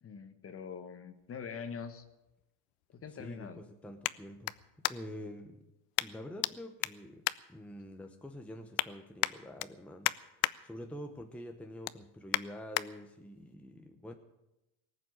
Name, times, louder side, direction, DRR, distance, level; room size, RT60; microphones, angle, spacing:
voice 1, 0.0-2.0 2.9-3.6, left 6 dB, 30° left, 10 dB, 1.5 m, -44 dB
sound 1, 1.2-5.3 5.9-6.5 6.8-8.1 8.5-8.9 9.2-10.5 11.0-11.2 11.6-12.9 13.4-13.5, left 20 dB, 65° left, 0.7 m, -36 dB
voice 2, 3.2-4.6 4.9-5.6 6.0-14.1, equal, 5° left, 5 dB, 0.9 m, -47 dB
19.0 x 7.5 x 9.7 m, 0.93 s
cardioid pair, 125°, 44 cm